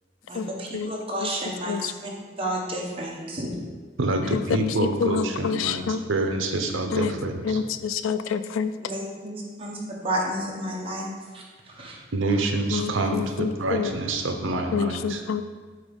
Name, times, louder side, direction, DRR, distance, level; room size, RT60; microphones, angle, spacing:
voice 1, 0.3-2.1 2.4-3.5 8.8-12.0 12.3-12.4, right 1 dB, 30° right, -3 dB, 1.2 m, -31 dB
voice 2, 4.0-5.8 6.1-7.6 12.1-15.2, right 2 dB, 70° right, 5 dB, 0.7 m, -26 dB
voice 3, 4.8-6.0 6.9-7.1 7.4-8.7 12.7-13.9 14.7-15.4, left 6 dB, 85° left, 12 dB, 0.4 m, -27 dB
7.8 x 3.0 x 5.3 m, 1.5 s
head